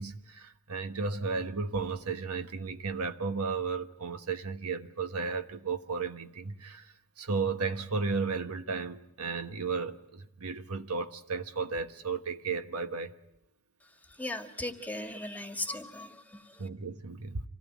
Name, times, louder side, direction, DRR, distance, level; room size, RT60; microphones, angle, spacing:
voice 1, 0.0-13.1 16.6-17.4, right 4 dB, 80° right, 1.4 m, -34 dB
voice 2, 14.2-16.6, left 1 dB, 5° left, 1.8 m, -38 dB
27.0 x 18.0 x 9.3 m
head